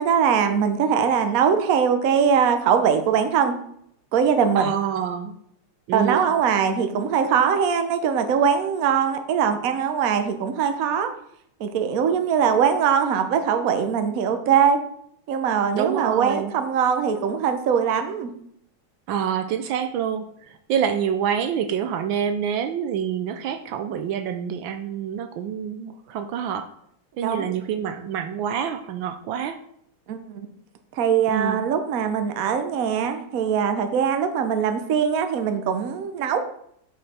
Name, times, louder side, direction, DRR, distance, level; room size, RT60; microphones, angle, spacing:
voice 1, 0.0-3.6 4.1-4.7 5.9-11.1 11.6-14.8 15.3-18.3 27.2-27.5 30.1-30.5 31.0-36.4, right 7 dB, 60° right, 7 dB, 1.0 m, -21 dB
voice 2, 4.6-5.3 5.9-6.3 15.7-16.5 19.1-26.7 27.2-29.6 31.3-31.6, right 8 dB, 75° right, 8 dB, 1.3 m, -27 dB
6.4 x 6.3 x 4.2 m, 0.70 s
omnidirectional pair, 2.2 m